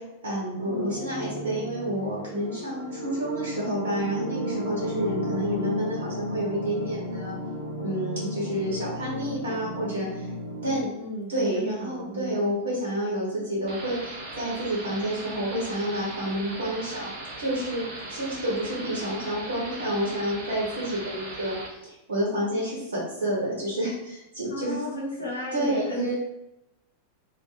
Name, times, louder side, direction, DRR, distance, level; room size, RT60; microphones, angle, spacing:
voice 1, 0.0-7.4 7.8-10.3 10.6-10.9 11.3-17.1 17.4-24.8 25.5-26.2, right 1 dB, 65° right, -6 dB, 1.0 m, -29 dB
sound 1, 0.7-10.8, equal, 80° right, 0.4 m, -34 dB
voice 2, 4.8-5.2 11.0-12.4 24.5-26.1, equal, 80° left, -4 dB, 0.8 m, -34 dB
sound 2, 13.7-21.7, right 2 dB, 40° right, 0.6 m, -39 dB
2.4 x 2.2 x 3.0 m, 0.88 s
figure-of-eight pair, 90°, 0 cm